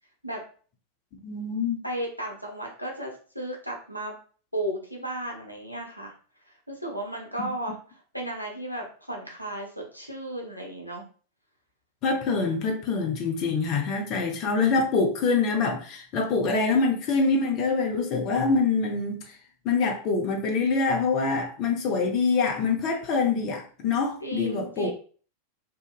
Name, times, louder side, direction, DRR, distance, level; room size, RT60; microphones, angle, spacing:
voice 1, 1.2-1.8 12.0-19.2 19.6-24.9, left 4 dB, 40° left, 2 dB, 0.7 m, -25 dB
voice 2, 1.8-4.1 4.5-6.1 6.7-11.0 24.2-24.9, right 1 dB, 90° right, 0 dB, 0.6 m, -34 dB
2.8 x 2.5 x 2.4 m, 0.42 s
figure-of-eight pair, 90°, 0 cm